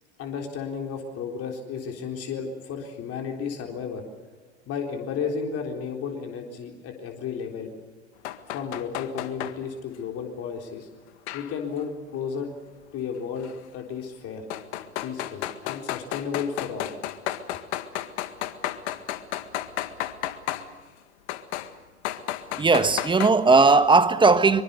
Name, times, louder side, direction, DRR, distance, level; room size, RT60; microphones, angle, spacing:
voice 1, 0.2-4.0 4.7-7.7 8.5-10.9 11.3-12.5 12.9-14.4 15.0-16.9, left 6 dB, 45° left, 4.0 m, -33 dB
sound 1, 8.2-9.5 11.3-11.8 13.4-13.5 14.5-20.7 21.3-21.7 22.0-23.3, left 13 dB, 70° left, 1.8 m, -32 dB
voice 2, 22.6-24.6, right 4 dB, 15° right, 1.4 m, -17 dB
24.5 x 24.0 x 6.9 m
hypercardioid pair, 95°, 35 cm